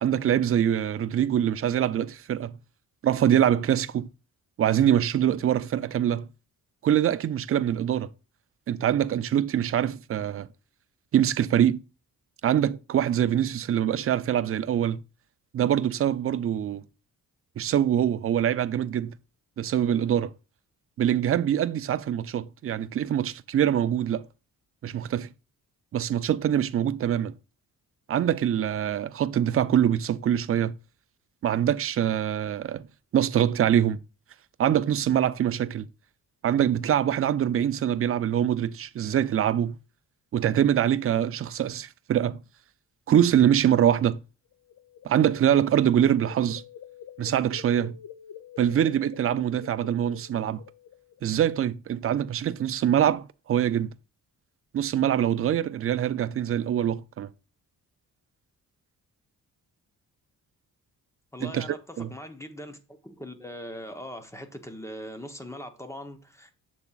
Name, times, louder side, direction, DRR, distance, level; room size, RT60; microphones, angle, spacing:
voice 1, 0.0-2.6 3.0-4.1 4.6-6.3 6.8-8.1 8.7-10.5 11.1-11.8 12.4-15.0 15.5-16.8 17.6-19.1 19.6-20.3 21.0-24.2 24.8-25.3 25.9-27.4 28.1-30.7 31.4-32.9 33.1-34.0 34.6-35.9 36.4-39.8 40.3-42.4 43.1-44.2 45.0-46.6 47.2-48.0 48.6-50.6 51.2-53.9 54.7-57.3 61.4-61.7 62.0-62.1, right 10 dB, 40° right, 0.4 m, -24 dB
sound 1, 44.5-51.2, left 9 dB, 50° left, 0.5 m, -47 dB
voice 2, 61.3-66.5, equal, 10° left, 0.9 m, -41 dB
7.1 x 7.0 x 2.4 m
wide cardioid pair, 160°, 36 cm